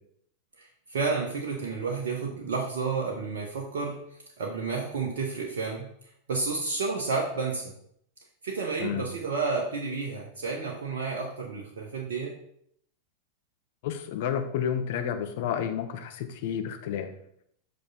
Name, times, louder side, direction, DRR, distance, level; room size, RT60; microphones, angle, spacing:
voice 1, 0.9-4.0 4.4-5.9 6.3-7.7 8.4-12.3, right 4 dB, 60° right, 0 dB, 1.1 m, -31 dB
voice 2, 13.8-17.1, left 8 dB, 50° left, 7 dB, 0.8 m, -30 dB
8.2 x 5.4 x 4.2 m, 0.70 s
figure-of-eight pair, 90°, 0 cm